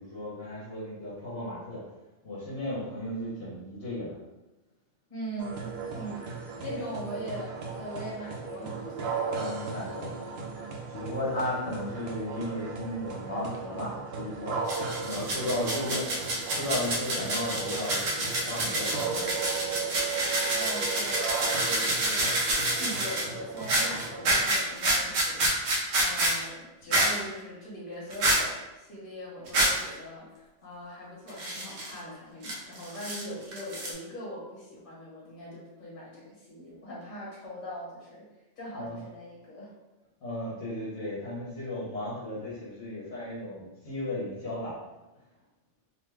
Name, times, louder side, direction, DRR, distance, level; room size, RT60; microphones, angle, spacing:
voice 1, 0.0-1.9 2.2-4.2 9.3-10.1 10.9-14.8 15.0-18.0 18.4-19.7 38.7-39.0 40.2-44.8, left 1 dB, 65° left, -9 dB, 1.1 m, -35 dB
voice 2, 5.1-6.3 6.6-9.0 20.5-22.3 22.8-25.7 26.0-38.3 38.6-39.7, equal, 45° left, -6 dB, 1.2 m, -41 dB
sound 1, 5.4-24.4, right 5 dB, 65° right, 0.7 m, -36 dB
sound 2, 14.7-23.3 23.6-26.4 26.9-27.2 28.1-28.4 29.5-29.9 31.3-31.9 32.4-33.2 33.5-33.9, right 1 dB, 80° right, 1.0 m, -28 dB
2.9 x 2.1 x 3.3 m, 1.1 s
omnidirectional pair, 1.3 m